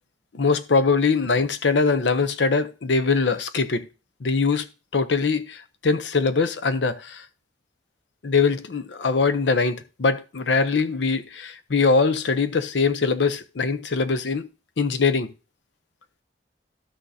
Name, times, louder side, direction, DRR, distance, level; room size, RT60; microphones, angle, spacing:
voice 1, 0.3-3.9 4.2-4.6 4.9-7.2 8.2-14.5 14.8-15.3, left 4 dB, 85° left, 0.7 m, -22 dB
12.5 x 6.4 x 2.7 m
head